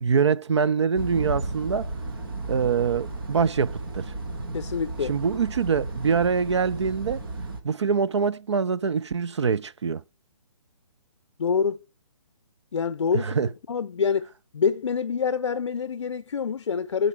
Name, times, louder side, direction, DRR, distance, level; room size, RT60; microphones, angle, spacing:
voice 1, 0.0-1.9 2.5-4.1 5.1-7.2 7.6-10.0 13.1-13.5, right 6 dB, 60° right, 0.4 m, -24 dB
sound 1, 1.0-7.6, right 2 dB, 40° right, 1.7 m, -34 dB
voice 2, 4.5-5.1 11.4-11.8 12.7-13.4 13.7-14.3 14.5-17.1, left 6 dB, 60° left, 0.6 m, -26 dB
12.0 x 5.0 x 3.6 m
hypercardioid pair, 180°, 17 cm